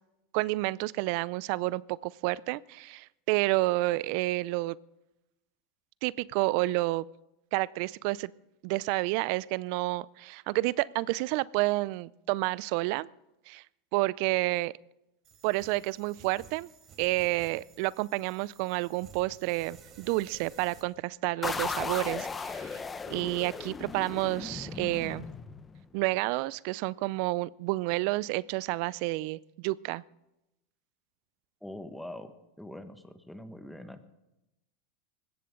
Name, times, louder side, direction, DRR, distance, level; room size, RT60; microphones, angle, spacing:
voice 1, 0.3-4.8 6.0-7.0 7.5-8.3 8.6-13.1 13.5-13.6 13.9-14.7 15.4-16.7 17.0-22.8 23.1-25.3 25.9-30.0, right 20 dB, 60° right, 22 dB, 0.4 m, -30 dB
sound 1, 15.2-20.8, right 7 dB, 40° right, 3.5 m, -54 dB
sound 2, 21.4-25.9, left 4 dB, 20° left, 1.0 m, -36 dB
voice 2, 31.6-32.3 32.6-34.1, left 1 dB, 5° left, 9 dB, 1.4 m, -43 dB
20.0 x 16.5 x 3.8 m, 0.91 s
hypercardioid pair, 110°, 0 cm